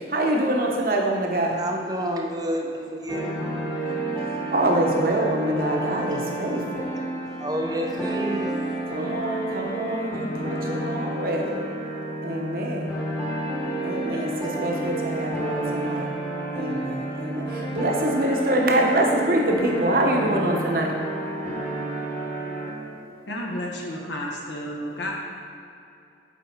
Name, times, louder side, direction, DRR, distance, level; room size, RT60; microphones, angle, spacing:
voice 1, 0.1-1.5 4.5-6.6 8.9-11.4 12.2-12.8 13.8-16.0 16.6-16.8 17.2-17.4 17.7-20.9, right 1 dB, 50° right, 0 dB, 0.9 m, -24 dB
voice 2, 1.5-3.4 6.1-6.2 6.8-7.0 7.4-8.5 14.1-14.6, equal, 20° right, 1 dB, 0.5 m, -30 dB
sound 1, 3.1-22.7, right 1 dB, 15° left, 1.0 m, -30 dB
voice 3, 23.3-25.1, left 1 dB, 85° left, -1 dB, 1.1 m, -31 dB
7.4 x 4.7 x 4.3 m, 2.6 s
head